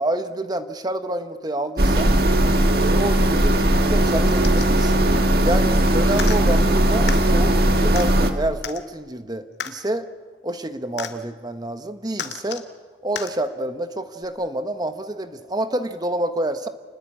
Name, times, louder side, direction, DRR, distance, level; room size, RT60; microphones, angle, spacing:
voice 1, 0.0-2.1 2.8-5.0 5.4-10.1 10.4-12.7 13.0-16.7, right 1 dB, 20° right, 9 dB, 1.1 m, -28 dB
sound 1, 1.8-8.3, right 1 dB, 55° right, 2.0 m, -18 dB
sound 2, 4.3-4.9 6.1-6.4 7.1-7.2 8.0-8.1 8.6-8.8 9.6-9.7 11.0-11.1 12.2-12.7 13.2-13.3 14.2-14.3, left 7 dB, 65° left, 1.9 m, -32 dB
29.0 x 20.5 x 8.7 m, 1.5 s
head